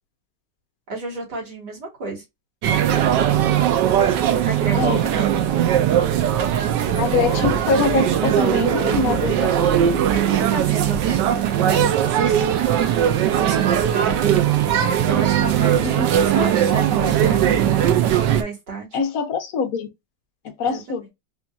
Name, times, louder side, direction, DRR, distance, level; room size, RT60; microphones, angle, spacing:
voice 1, 0.9-2.2 4.4-5.4 10.1-12.6 13.4-14.4 15.0-17.8 18.3-18.9 20.6-21.0, right 4 dB, 60° right, 2.5 m, -30 dB
sound 1, 2.6-18.4, right 10 dB, 75° right, 1.3 m, -19 dB
voice 2, 4.7-5.0 7.0-9.7 15.8-16.1 18.9-19.9 20.4-21.1, left 5 dB, 60° left, 1.1 m, -24 dB
4.4 x 2.7 x 2.4 m
omnidirectional pair, 2.0 m